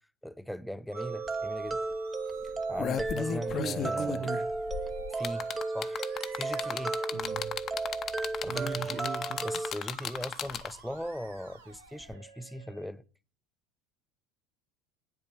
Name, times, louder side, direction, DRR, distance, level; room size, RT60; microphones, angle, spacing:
voice 1, 0.2-1.8 2.4-4.3 5.1-5.5 5.7-6.1 6.3-7.0 8.4-9.0 9.4-13.0, equal, 5° left, 0.7 m, -39 dB
sound 1, 0.9-9.7, right 3 dB, 20° right, 0.9 m, -34 dB
Musical instrument, 0.9-12.9, right 7 dB, 90° right, 1.5 m, -52 dB
sound 2, 1.3-1.4 1.7-1.9 2.5-10.9 12.1-12.2, left 8 dB, 40° left, 0.8 m, -35 dB
voice 2, 3.2-4.5 7.1-7.6 8.5-9.5, right 8 dB, 45° right, 0.5 m, -39 dB
9.4 x 8.2 x 8.6 m
hypercardioid pair, 85°, 0 cm